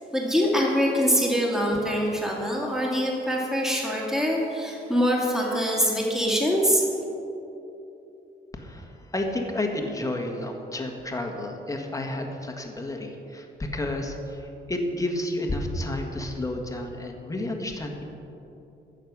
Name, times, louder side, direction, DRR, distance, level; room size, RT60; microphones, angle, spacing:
voice 1, 0.0-6.9, equal, ahead, -3 dB, 2.3 m, -24 dB
voice 2, 8.5-18.0, left 1 dB, 15° left, 2 dB, 1.6 m, -31 dB
15.0 x 6.6 x 6.1 m, 3.0 s
cardioid pair, 90°, 20 cm